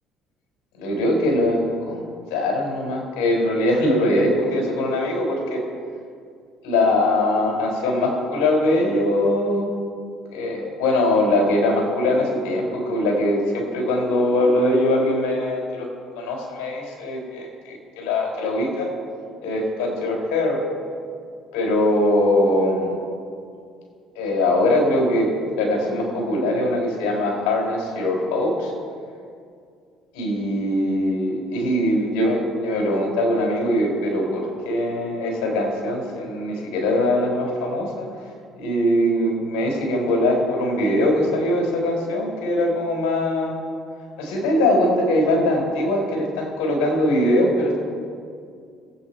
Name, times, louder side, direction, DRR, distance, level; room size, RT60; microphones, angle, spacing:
voice 1, 0.8-5.6 6.6-9.7 10.3-15.9 16.2-18.9 19.4-20.6 21.5-22.9 24.2-28.7 30.1-38.1 38.6-43.6 44.2-47.9, left 1 dB, 75° left, -1 dB, 4.4 m, -22 dB
24.0 x 8.5 x 4.5 m, 2.2 s
supercardioid pair, 70°, 0 cm